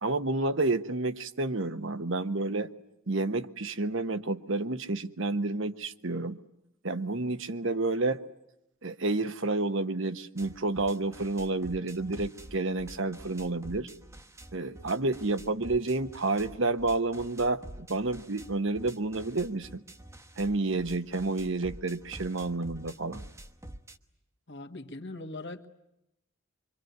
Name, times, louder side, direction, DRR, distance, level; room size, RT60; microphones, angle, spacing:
voice 1, 0.0-2.7 3.1-6.4 6.8-8.2 8.8-13.9 14.5-19.8 20.4-23.2, right 2 dB, 60° right, 10 dB, 1.1 m, -30 dB
sound 1, 10.4-24.0, right 1 dB, 15° right, 1.2 m, -48 dB
voice 2, 24.5-25.7, left 2 dB, 55° left, 5 dB, 1.7 m, -40 dB
25.0 x 25.0 x 9.4 m, 0.85 s
head